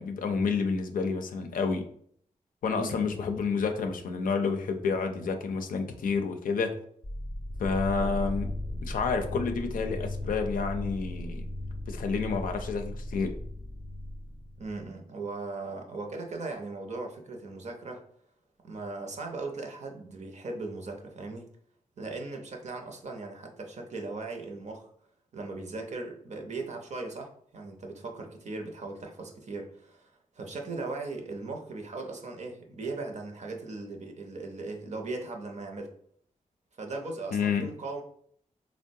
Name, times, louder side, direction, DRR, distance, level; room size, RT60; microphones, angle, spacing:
voice 1, 0.0-1.9 2.6-6.8 7.6-8.6 8.8-11.5 11.9-13.4 37.3-37.8, left 5 dB, 85° left, 5 dB, 0.4 m, -29 dB
voice 2, 2.7-3.2 7.9-8.4 14.6-18.0 18.6-21.5 22.0-24.9 25.3-35.9 36.8-38.0, right 3 dB, 55° right, 3 dB, 0.6 m, -38 dB
sound 1, 7.0-14.9, left 1 dB, 10° left, 0.5 m, -36 dB
3.7 x 2.1 x 2.6 m, 0.62 s
cardioid pair, 75°, 14 cm